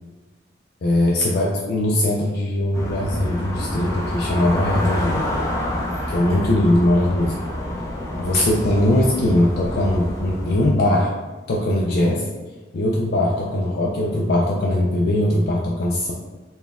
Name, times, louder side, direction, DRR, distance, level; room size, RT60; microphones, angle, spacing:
voice 1, 0.8-5.4 6.1-7.4 8.2-11.1 11.5-12.3 12.7-16.1, left 1 dB, 60° left, -2 dB, 0.4 m, -20 dB
sound 1, 2.7-10.7, left 1 dB, 15° left, 0.6 m, -28 dB
4.1 x 2.3 x 3.5 m, 1.3 s
head